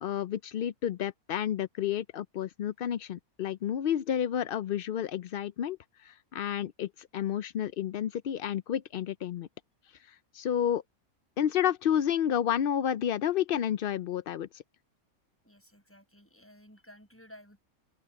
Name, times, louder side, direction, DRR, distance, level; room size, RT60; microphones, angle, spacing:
voice 1, 0.0-9.5 10.0-10.8 11.4-14.6, left 10 dB, 70° left, 0.5 m, -30 dB
voice 2, 15.4-17.6, equal, 10° left, 6.8 m, -54 dB
open air
omnidirectional pair, 1.5 m